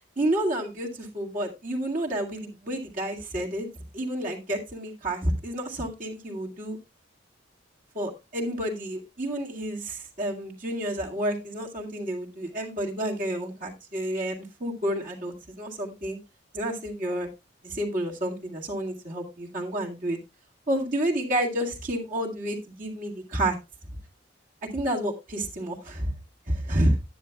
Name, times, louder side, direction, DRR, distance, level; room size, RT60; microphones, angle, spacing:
voice 1, 0.2-3.7 3.9-6.8 7.9-16.2 16.5-17.3 17.6-20.2 20.7-23.6 24.6-26.1 26.5-27.0, right 1 dB, 45° right, -2 dB, 2.0 m, -30 dB
11.5 x 9.9 x 2.3 m, 0.25 s
head